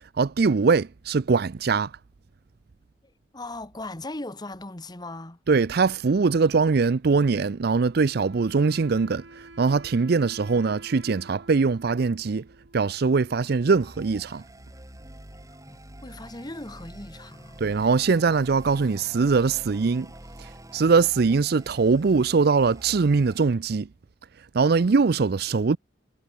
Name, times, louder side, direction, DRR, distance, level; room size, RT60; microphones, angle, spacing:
voice 1, 0.2-1.9 5.5-12.4 12.7-14.4 17.6-20.1 20.7-23.9 24.5-25.8, right 4 dB, 60° right, 0.5 m, -22 dB
voice 2, 3.3-5.4 15.7-17.6, left 2 dB, 25° left, 1.6 m, -38 dB
Wind instrument woodwind instrument, 7.9-13.4, right 2 dB, 80° right, 7.1 m, -49 dB
sound 1, 13.8-23.4, right 1 dB, 20° right, 3.3 m, -46 dB
head